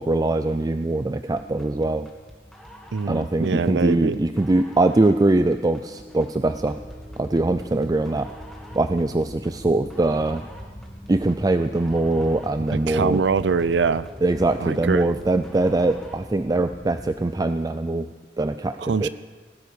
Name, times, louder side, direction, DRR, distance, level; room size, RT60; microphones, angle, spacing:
voice 1, 0.0-2.1 3.1-6.8 7.2-8.3 8.7-10.4 11.1-13.2 14.2-18.1 18.4-19.1, right 2 dB, 20° right, 0.4 m, -22 dB
sound 1, 1.4-16.3, equal, ahead, 2.0 m, -46 dB
voice 2, 2.9-4.2 12.9-14.1 14.6-15.1 18.8-19.1, right 5 dB, 85° right, 0.5 m, -23 dB
Fire, 6.4-17.3, equal, 25° left, 2.5 m, -42 dB
18.5 x 11.0 x 7.0 m
head